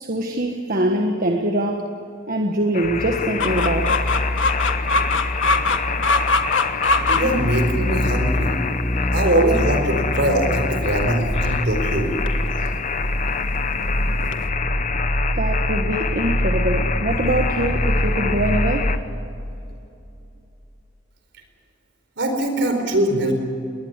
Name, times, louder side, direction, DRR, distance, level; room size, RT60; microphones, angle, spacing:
voice 1, 0.0-1.9 2.3-4.1 15.3-19.0, right 1 dB, 50° right, 3 dB, 1.5 m, -23 dB
sound 1, 2.7-19.0, left 6 dB, 40° left, 1.0 m, -28 dB
sound 2, 2.8-20.4 20.6-20.7, equal, 10° left, 1.1 m, -25 dB
Chicken rooster, 3.4-14.5, left 3 dB, 80° left, 1.4 m, -25 dB
voice 2, 7.1-8.5 9.1-12.1 22.2-23.3, right 1 dB, 65° right, 6 dB, 4.4 m, -21 dB
21.0 x 20.0 x 8.4 m, 2.7 s
head